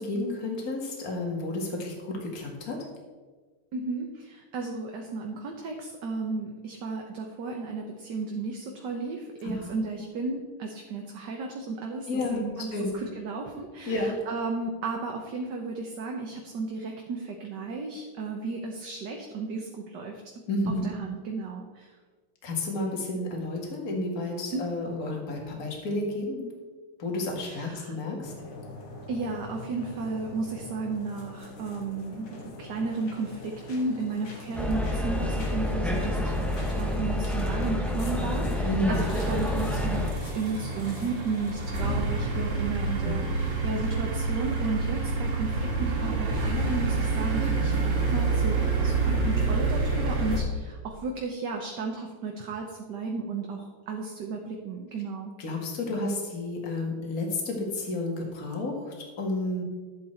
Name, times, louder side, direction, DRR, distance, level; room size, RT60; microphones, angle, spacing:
voice 1, 0.0-2.8 9.4-9.8 12.1-13.0 13.9-14.2 20.5-20.9 22.4-26.5 27.0-28.3 38.6-39.1 43.0-43.3 55.4-59.6, left 2 dB, 40° left, 0 dB, 2.3 m, -31 dB
voice 2, 3.7-20.2 20.8-21.9 24.5-24.6 27.4-27.9 29.1-40.0 40.3-55.3, right 4 dB, 60° right, 1 dB, 1.5 m, -34 dB
sound 1, 28.2-41.8, left 3 dB, 75° left, 2.8 m, -43 dB
sound 2, 34.5-40.1, left 1 dB, ahead, 0.7 m, -28 dB
sound 3, 38.9-50.4, right 3 dB, 85° right, 2.9 m, -28 dB
11.5 x 8.4 x 4.4 m, 1.4 s
omnidirectional pair, 2.4 m